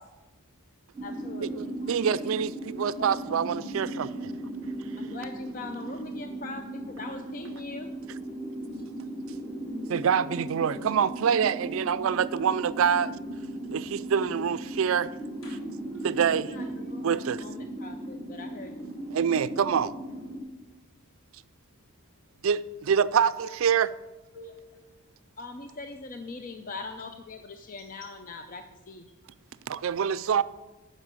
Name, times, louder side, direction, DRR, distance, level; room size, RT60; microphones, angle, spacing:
voice 1, 0.0-0.9 1.4-1.5 1.8-4.1 4.5-5.2 8.7-8.8 9.2-10.1 15.4-16.1 17.0-17.1 21.7-22.5 24.3-25.4 29.1-29.9, left 1 dB, 75° left, 3.4 m, -50 dB
sound 1, 0.9-20.4, right 1 dB, 20° right, 2.4 m, -37 dB
voice 2, 1.0-1.9 5.0-7.9 16.3-19.0 25.4-29.1, left 3 dB, 40° left, 0.5 m, -41 dB
voice 3, 1.6-4.1 9.9-13.1 13.7-15.1 16.0-16.5 17.0-17.4 19.1-19.9 22.4-23.9 29.7-30.4, right 7 dB, 70° right, 0.4 m, -26 dB
11.0 x 5.5 x 6.8 m
head